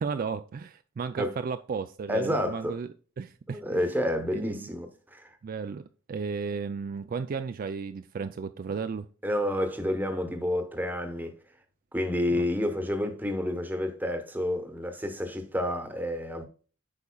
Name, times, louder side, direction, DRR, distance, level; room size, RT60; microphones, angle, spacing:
voice 1, 0.0-2.9 3.2-3.9 4.3-4.7 5.4-5.8 6.1-9.1 12.3-12.5, right 5 dB, 45° right, 0.3 m, -34 dB
voice 2, 2.1-2.8 3.5-5.3 9.2-11.4 11.9-16.4, left 1 dB, 10° right, 0.9 m, -29 dB
8.3 x 5.4 x 2.3 m
head